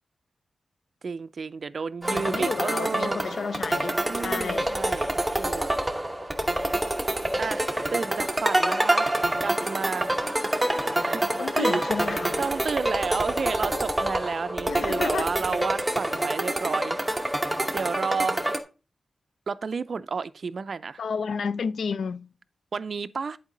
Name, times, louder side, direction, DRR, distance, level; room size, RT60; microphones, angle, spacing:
voice 1, 1.0-3.2 4.1-5.1 5.3-5.8 7.4-9.1 9.4-10.2 11.0-11.8 12.4-17.0 17.7-18.4 19.5-21.0 22.7-23.4, right 5 dB, 55° right, 0.4 m, -31 dB
sound 1, 2.0-18.6, right 1 dB, 10° right, 0.9 m, -27 dB
voice 2, 2.1-4.7 11.4-12.4 14.7-15.3 21.0-22.3, left 6 dB, 85° left, 0.4 m, -31 dB
Wind instrument woodwind instrument, 9.7-13.1 13.4-17.3, left 1 dB, 50° left, 2.1 m, -44 dB
10.0 x 4.6 x 3.8 m
wide cardioid pair, 135°, 0 cm